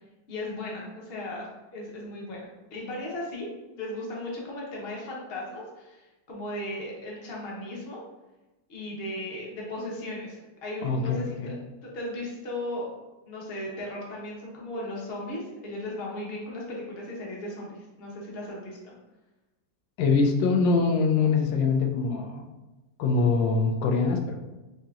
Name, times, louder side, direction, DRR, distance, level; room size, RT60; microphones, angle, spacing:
voice 1, 0.3-2.4 2.7-8.0 8.7-11.6 11.8-12.8 13.3-18.9, left 1 dB, 45° left, -3 dB, 0.9 m, -36 dB
voice 2, 10.8-11.5 20.0-22.4 23.0-24.4, left 4 dB, 85° left, 1 dB, 1.3 m, -23 dB
5.8 x 2.8 x 2.4 m, 1.1 s
omnidirectional pair, 2.0 m